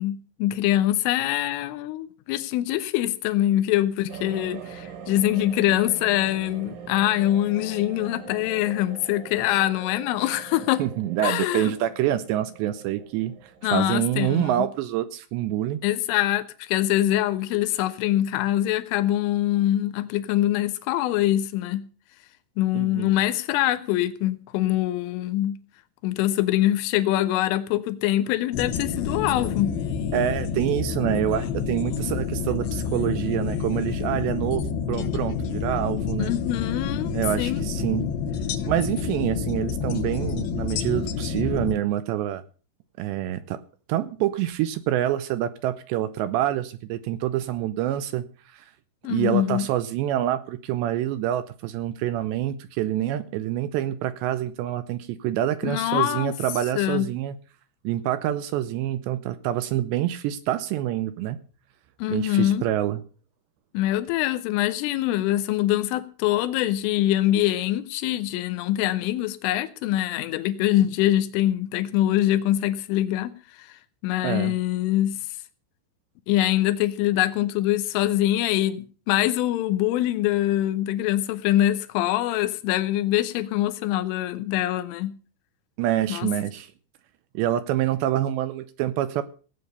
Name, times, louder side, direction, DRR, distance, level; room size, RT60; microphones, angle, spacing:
voice 1, 0.0-10.8 11.2-11.7 13.6-14.5 15.8-21.8 22.6-25.6 26.0-29.7 36.2-37.6 49.0-49.7 55.6-56.3 56.8-57.1 62.0-62.6 63.7-75.2 76.3-85.1 86.1-86.3, left 14 dB, 90° left, 10 dB, 3.4 m, -24 dB
sound 1, 4.1-13.9, right 7 dB, 60° right, 2.5 m, -42 dB
voice 2, 10.8-15.8 22.7-23.2 30.1-36.3 37.1-38.1 38.7-42.4 43.0-43.6 43.9-48.7 49.1-57.4 57.8-61.4 62.1-63.0 74.2-74.6 85.8-86.7 87.3-89.2, right 12 dB, 80° right, 12 dB, 2.7 m, -26 dB
sound 2, 28.5-41.8, left 6 dB, 65° left, 2.6 m, -28 dB
17.5 x 8.8 x 6.8 m, 0.38 s
omnidirectional pair, 5.5 m